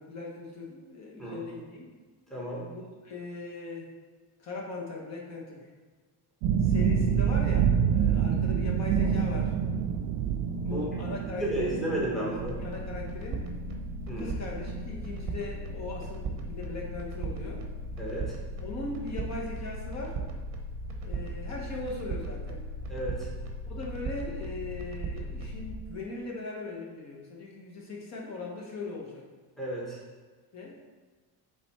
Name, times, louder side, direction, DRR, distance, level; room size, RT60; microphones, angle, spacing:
voice 1, 0.0-1.9 2.7-3.9 4.4-5.7 6.6-9.5 10.7-11.9 12.2-12.3 12.6-13.5 14.2-17.7 18.6-20.2 21.0-22.7 23.7-29.2 30.5-30.8, left 3 dB, 35° left, -1 dB, 1.0 m, -39 dB
voice 2, 2.3-2.7 10.6-10.8 11.4-12.6 14.1-14.3 18.0-18.3 22.9-23.3 29.6-30.0, right 1 dB, ahead, -5 dB, 0.9 m, -33 dB
sound 1, 6.4-16.6 16.9-17.6 18.0-18.1, right 7 dB, 70° right, 0.5 m, -28 dB
sound 2, 12.4-25.8, right 2 dB, 40° right, 0.8 m, -37 dB
7.6 x 3.5 x 4.2 m, 1.4 s
cardioid pair, 160°, 44 cm